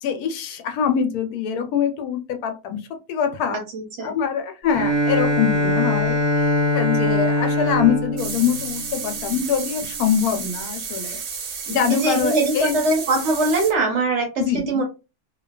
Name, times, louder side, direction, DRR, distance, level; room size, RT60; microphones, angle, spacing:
voice 1, 0.0-2.8 3.1-3.6 4.0-6.2 6.7-11.2 11.7-12.8 14.4-14.8, left 8 dB, 80° left, 6 dB, 1.1 m, -23 dB
voice 2, 3.5-4.1 11.7-14.8, right 2 dB, 55° right, 2 dB, 0.9 m, -22 dB
Bowed string instrument, 4.7-9.5, left 1 dB, 35° right, 0.4 m, -22 dB
sound 1, 8.2-13.7, right 6 dB, 80° right, 1.2 m, -32 dB
2.7 x 2.2 x 2.2 m, 0.28 s
omnidirectional pair, 1.6 m